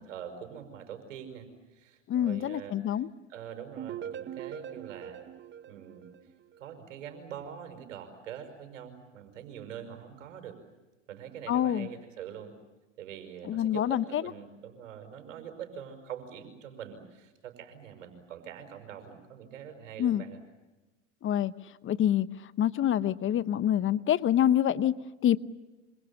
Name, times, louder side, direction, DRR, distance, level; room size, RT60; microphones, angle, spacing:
voice 1, 0.0-3.0 3.3-5.3 5.6-6.1 6.6-10.6 11.1-12.5 13.0-20.4, right 8 dB, 80° right, 7 dB, 5.7 m, -44 dB
voice 2, 2.1-3.1 11.5-11.9 13.5-14.2 20.0-20.2 21.2-21.5 21.8-22.3 22.6-25.4, left 10 dB, 35° left, 16 dB, 0.9 m, -26 dB
sound 1, 3.8-6.7, right 10 dB, 30° right, 1.1 m, -42 dB
27.0 x 26.5 x 7.2 m, 1.1 s
hypercardioid pair, 95°, 38 cm